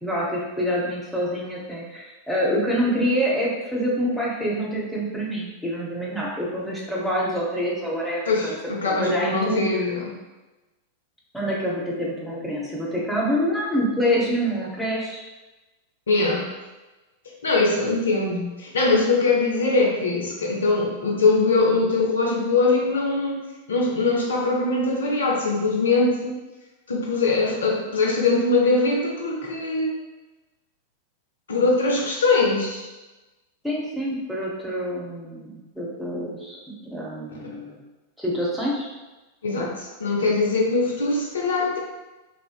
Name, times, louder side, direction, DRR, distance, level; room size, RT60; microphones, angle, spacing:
voice 1, 0.0-8.6 8.9-9.9 11.3-15.2 33.6-36.6 36.8-37.8 38.2-38.9 39.5-39.7, equal, ahead, -6 dB, 0.7 m, -26 dB
voice 2, 8.3-10.1 16.1-16.5 17.4-23.4 23.7-26.4 26.9-29.9 31.5-32.9 39.4-41.8, left 3 dB, 65° left, -1 dB, 0.5 m, -22 dB
2.4 x 2.4 x 2.2 m, 1.1 s
figure-of-eight pair, 90°, 0 cm